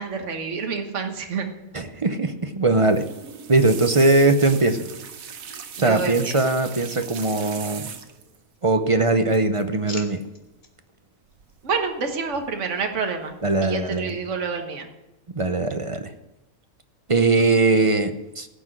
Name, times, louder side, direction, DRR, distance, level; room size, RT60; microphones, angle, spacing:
voice 1, 0.0-1.5 5.8-6.3 11.6-13.3 13.6-14.9, right 5 dB, 60° right, 5 dB, 1.6 m, -28 dB
voice 2, 1.7-3.1 3.5-4.8 5.8-7.8 8.6-10.2 13.4-14.2 15.3-16.1 17.1-18.5, right 2 dB, 35° right, 8 dB, 0.6 m, -20 dB
sound 1, 2.8-8.4 9.3-9.6 9.9-10.2 11.4-12.0 12.3-12.9 13.3-13.7 14.1-14.2, right 7 dB, 80° right, 1.4 m, -39 dB
sound 2, 8.3-9.0 9.3-10.7 11.3-11.6, left 2 dB, 35° left, 1.5 m, -45 dB
16.5 x 6.1 x 7.7 m, 0.96 s
omnidirectional pair, 1.4 m